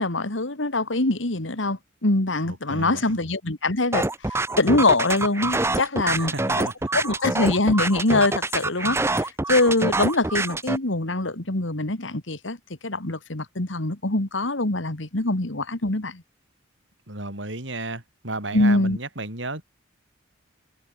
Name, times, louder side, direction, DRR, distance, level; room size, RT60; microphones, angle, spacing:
voice 1, 0.0-4.1 4.6-6.7 6.9-12.6 12.8-16.2 18.5-19.0, left 2 dB, 75° left, 2.3 m, -23 dB
voice 2, 2.4-3.2 6.1-6.9 17.1-19.6, right 2 dB, 70° right, 5.6 m, -34 dB
sound 1, 3.9-10.8, right 2 dB, 15° right, 0.7 m, -25 dB
head